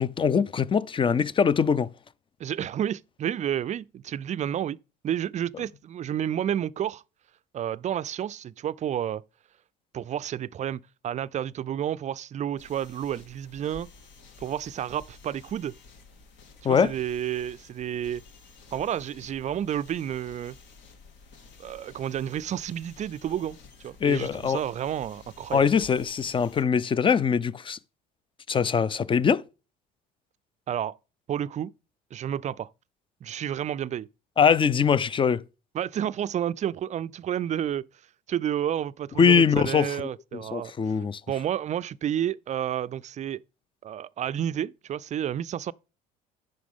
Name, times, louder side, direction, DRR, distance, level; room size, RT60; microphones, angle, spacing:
voice 1, 0.0-1.9 16.6-16.9 24.0-24.6 25.5-27.8 28.5-29.4 34.4-35.4 39.2-41.2, left 6 dB, 25° left, 0.5 m, -22 dB
voice 2, 2.4-4.8 5.0-7.0 7.5-9.2 9.9-13.9 14.4-15.7 16.6-18.2 18.7-20.6 21.6-23.6 23.8-25.7 30.7-31.0 31.3-31.7 32.1-32.7 33.2-34.1 35.7-37.9 38.3-41.0 41.3-43.4 43.8-45.7, right 10 dB, 35° right, 0.4 m, -30 dB
sound 1, 12.6-26.6, left 4 dB, 65° left, 2.2 m, -52 dB
9.3 x 6.0 x 3.6 m
hypercardioid pair, 75°, 21 cm